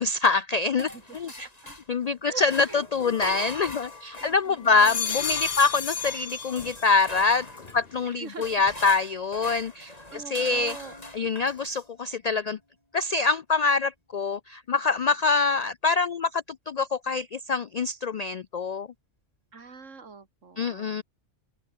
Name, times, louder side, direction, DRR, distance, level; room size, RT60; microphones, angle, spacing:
voice 1, 0.0-0.9 1.1-1.5 1.9-7.5 7.7-10.8 11.1-12.6 12.9-18.9 20.6-21.0, left 4 dB, 70° left, 0.3 m, -25 dB
sound 1, 0.8-2.1 2.4-11.9, left 1 dB, 30° left, 3.9 m, -41 dB
voice 2, 0.8-1.8 2.3-2.8 4.2-5.0 8.0-8.5 10.1-10.9 19.5-21.0, right 4 dB, 80° right, 2.6 m, -44 dB
sound 2, 3.0-4.2 4.6-7.1 7.4-8.0, left 7 dB, 50° left, 1.2 m, -34 dB
omnidirectional pair, 1.3 m